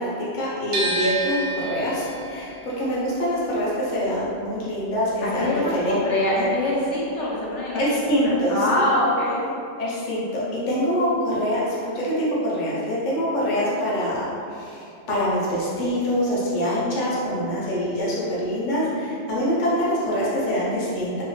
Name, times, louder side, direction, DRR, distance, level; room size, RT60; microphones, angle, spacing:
voice 1, 0.0-5.9 6.4-6.5 7.7-8.8 9.8-21.2, equal, 45° left, -8 dB, 0.8 m, -25 dB
sound 1, 0.7-6.8 7.0-8.3, right 2 dB, 85° right, 1.0 m, -32 dB
voice 2, 5.2-9.4, left 1 dB, 75° left, -5 dB, 0.9 m, -24 dB
3.4 x 2.1 x 3.1 m, 2.5 s
omnidirectional pair, 1.2 m